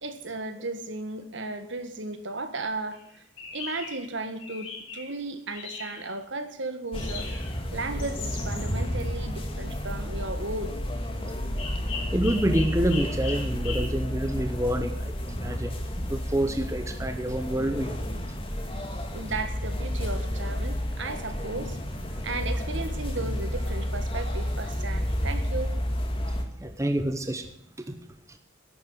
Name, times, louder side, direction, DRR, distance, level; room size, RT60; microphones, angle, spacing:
voice 1, 0.0-3.2 3.5-4.7 4.9-7.3 7.7-10.8 19.1-21.8 22.2-25.8, right 2 dB, 70° right, 9 dB, 1.6 m, -35 dB
sound 1, 2.9-3.0 3.4-4.0 4.4-5.1 5.5-6.1 6.9-7.6 8.0-8.8 11.6-13.8, left 4 dB, 80° left, 4.4 m, -39 dB
sound 2, 6.9-26.4, equal, 25° left, 1.8 m, -31 dB
voice 2, 12.1-18.0 26.6-27.5 27.8-28.0, right 1 dB, 15° right, 7 dB, 0.9 m, -28 dB
11.5 x 8.7 x 9.7 m, 0.70 s
head